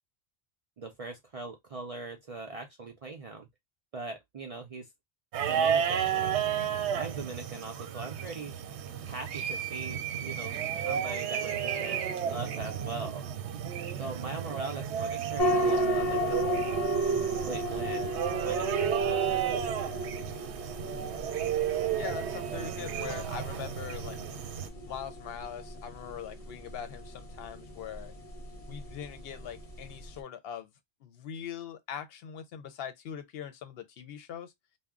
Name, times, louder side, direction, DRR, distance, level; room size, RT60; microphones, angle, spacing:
voice 1, 0.8-3.5 3.9-4.9 5.4-6.5 6.9-8.6 9.1-13.2 14.0-16.6 17.4-18.2 18.4-19.6, right 3 dB, 50° right, 0.4 m, -41 dB
sound 1, 5.3-24.7, right 8 dB, 85° right, 0.8 m, -32 dB
sound 2, 15.4-30.2, equal, 40° left, 0.7 m, -34 dB
voice 2, 21.9-24.2 24.5-28.1 28.7-30.7 31.0-34.5, left 8 dB, 70° left, 0.8 m, -41 dB
2.3 x 2.1 x 3.5 m
omnidirectional pair, 1.1 m